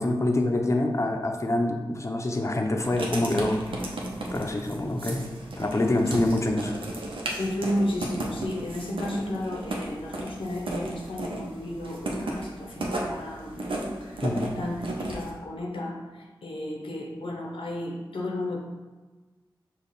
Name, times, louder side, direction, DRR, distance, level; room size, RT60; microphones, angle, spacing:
voice 1, 0.0-3.6 4.3-5.3 5.6-6.8 14.2-14.5, left 1 dB, 35° left, 3 dB, 0.6 m, -26 dB
Writing, 2.8-15.3, right 1 dB, 85° right, 0.7 m, -35 dB
voice 2, 7.4-14.3 14.6-18.6, left 1 dB, 85° left, -1 dB, 0.8 m, -33 dB
5.2 x 2.4 x 4.1 m, 1.3 s
cardioid pair, 45°, 9 cm